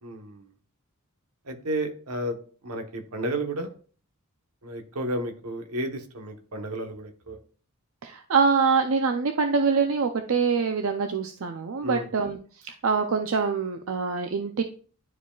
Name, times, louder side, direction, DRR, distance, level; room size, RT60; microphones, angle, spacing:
voice 1, 0.0-0.5 1.4-2.4 2.6-3.7 4.6-7.4 11.8-12.1, right 1 dB, 85° right, 5 dB, 1.1 m, -32 dB
voice 2, 8.0-12.4 12.6-14.6, right 5 dB, 65° right, 6 dB, 0.5 m, -24 dB
11.0 x 4.8 x 2.4 m, 0.42 s
head